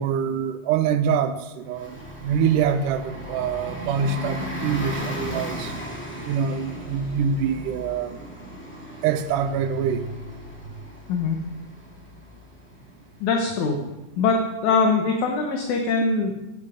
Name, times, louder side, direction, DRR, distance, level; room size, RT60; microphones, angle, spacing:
voice 1, 0.0-5.7 6.3-8.3 9.0-10.2, right 7 dB, 90° right, 8 dB, 2.3 m, -25 dB
Bus, 1.7-14.0, equal, 5° left, 2.2 m, -36 dB
voice 2, 13.2-13.7 14.2-14.4 14.6-16.3, left 4 dB, 70° left, 2 dB, 2.5 m, -22 dB
15.5 x 9.1 x 5.1 m, 1.0 s
omnidirectional pair, 3.6 m